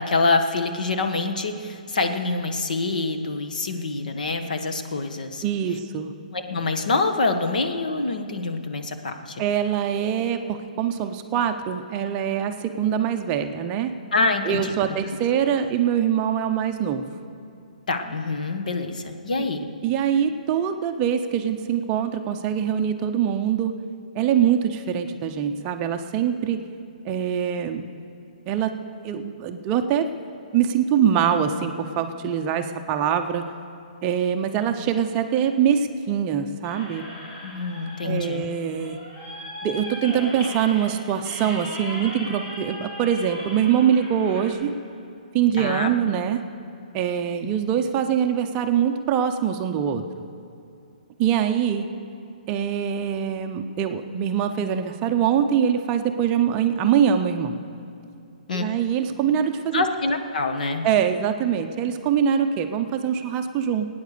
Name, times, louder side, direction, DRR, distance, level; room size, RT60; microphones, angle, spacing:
voice 1, 0.0-5.4 6.3-9.4 14.1-15.0 17.9-19.7 37.4-38.5 45.6-45.9 58.5-58.6 59.7-60.9, left 3 dB, 75° left, 6 dB, 1.4 m, -26 dB
voice 2, 5.4-6.1 9.4-13.9 14.5-17.1 19.4-19.5 19.8-23.8 24.1-26.7 27.0-27.9 28.5-28.8 29.0-30.1 30.5-33.5 34.0-37.1 38.0-39.0 39.6-44.8 45.3-46.4 46.9-50.1 51.2-51.9 52.5-57.6 58.5-59.8 60.8-63.9, right 8 dB, 20° right, 6 dB, 0.5 m, -23 dB
sound 1, 36.6-44.5, left 1 dB, 25° left, 4.5 m, -38 dB
18.5 x 9.4 x 6.6 m, 2.6 s
hypercardioid pair, 165°, 4 cm